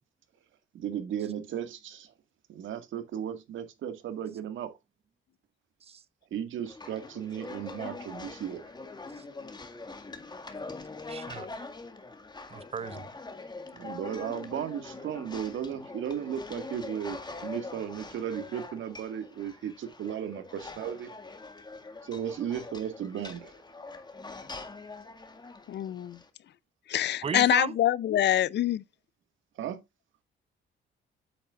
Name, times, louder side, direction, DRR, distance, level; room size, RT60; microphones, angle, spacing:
voice 1, 0.7-2.1 2.5-4.8 6.3-8.7 13.7-21.1 22.0-23.6 29.6-29.8, right 9 dB, 75° right, 1.9 m, -35 dB
sound 1, 6.6-26.3, left 3 dB, 20° left, 2.0 m, -43 dB
voice 2, 11.1-11.5 12.5-13.1 27.2-27.7, right 6 dB, 30° right, 0.7 m, -35 dB
voice 3, 25.7-26.2 26.9-28.8, left 12 dB, 60° left, 0.6 m, -25 dB
8.5 x 8.4 x 2.5 m
cardioid pair, 90°, 20 cm